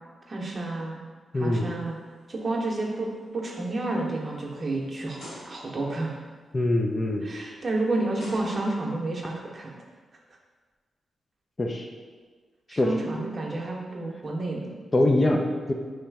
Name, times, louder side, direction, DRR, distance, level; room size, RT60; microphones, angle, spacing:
voice 1, 0.3-1.0 1.3-2.0 2.3-6.2 7.2-9.7 12.7-14.7, right 2 dB, 35° right, -2 dB, 0.7 m, -30 dB
voice 2, 1.3-1.7 6.5-7.3 11.6-11.9 12.7-12.9 14.9-15.7, left 1 dB, 25° left, 2 dB, 0.4 m, -23 dB
sound 1, 2.0-2.3 2.8-3.0 3.7-3.8 5.2-5.9 7.4-7.5 8.2-9.1, left 1 dB, 75° left, 1.2 m, -45 dB
3.2 x 3.0 x 4.6 m, 1.5 s
wide cardioid pair, 115°, 0 cm